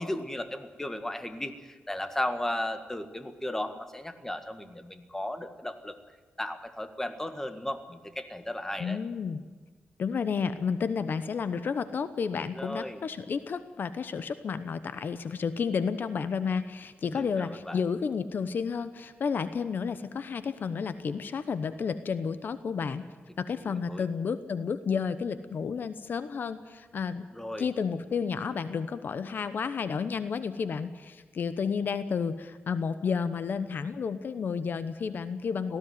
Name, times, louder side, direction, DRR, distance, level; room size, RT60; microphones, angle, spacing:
voice 1, 0.0-6.0 6.4-9.0 12.5-13.0 17.0-17.8 23.6-24.0 27.3-27.6, left 1 dB, 10° left, 8 dB, 1.8 m, -35 dB
voice 2, 8.8-9.4 10.0-23.0 23.4-27.3 27.6-35.8, left 6 dB, 60° left, 12 dB, 1.0 m, -31 dB
18.5 x 15.0 x 9.5 m, 1.4 s
wide cardioid pair, 105°, 4 cm